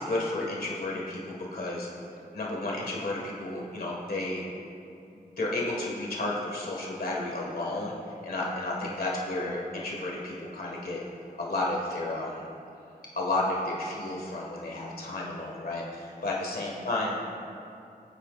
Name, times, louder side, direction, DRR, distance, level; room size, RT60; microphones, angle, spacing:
voice 1, 0.1-1.9 2.3-4.4 5.1-7.9 8.2-11.0 11.4-12.4 13.2-17.3, left 2 dB, 70° left, -3 dB, 1.8 m, -32 dB
21.0 x 9.4 x 2.5 m, 2.5 s
wide cardioid pair, 105°, 16 cm